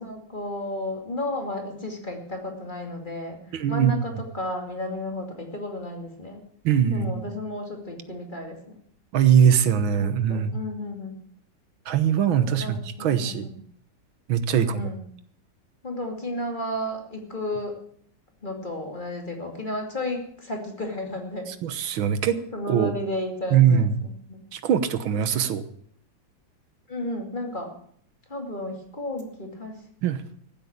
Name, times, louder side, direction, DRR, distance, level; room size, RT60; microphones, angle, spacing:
voice 1, 0.0-6.5 6.9-8.6 10.0-11.2 12.3-13.6 14.5-15.0 15.8-17.8 18.4-21.5 22.2-24.4 26.9-27.7 28.3-29.8, left 1 dB, 25° left, 2 dB, 2.6 m, -33 dB
voice 2, 3.5-3.9 6.6-7.2 9.1-10.6 11.9-13.5 14.3-14.9 21.6-22.4 22.7-23.0 23.5-24.0 24.5-25.6 30.0-30.2, right 8 dB, 85° right, 12 dB, 1.8 m, -21 dB
14.5 x 8.1 x 8.7 m, 0.62 s
omnidirectional pair, 2.1 m